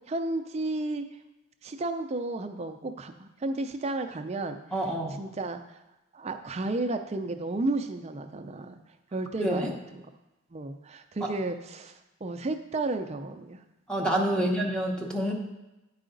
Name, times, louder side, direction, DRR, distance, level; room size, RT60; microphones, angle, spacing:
voice 1, 0.1-1.0 1.6-4.6 5.2-5.8 6.1-8.8 9.1-10.0 10.5-13.6 14.4-14.5, right 2 dB, 30° right, 6 dB, 0.4 m, -33 dB
voice 2, 4.7-5.2 9.4-9.7 13.9-15.3, right 1 dB, 5° left, -1 dB, 0.9 m, -27 dB
9.1 x 4.9 x 3.9 m, 0.99 s
head